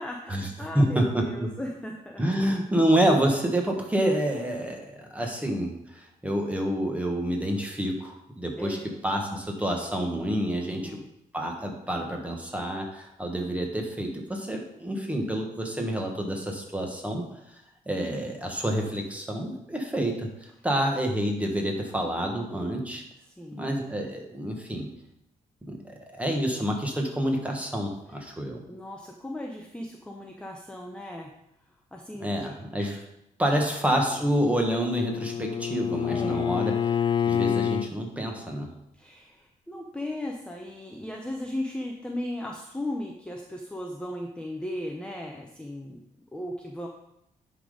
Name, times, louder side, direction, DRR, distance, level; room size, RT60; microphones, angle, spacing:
voice 1, 0.0-2.2 8.6-8.8 10.6-11.0 23.4-23.7 28.7-31.3 31.9-32.5 32.8-32.9 33.4-33.6 36.1-36.5 38.9-46.0 46.3-46.9, left 1 dB, 5° left, 1 dB, 0.7 m, -36 dB
voice 2, 0.7-1.5 2.2-11.0 11.3-17.2 17.9-23.0 23.5-24.9 25.7-28.6 32.2-33.0 33.4-36.8 37.3-38.7, right 1 dB, 10° right, 1 dB, 1.4 m, -28 dB
Bowed string instrument, 34.1-37.9, left 8 dB, 35° left, 0.3 m, -28 dB
10.0 x 4.0 x 5.0 m, 0.83 s
cardioid pair, 125°, 14 cm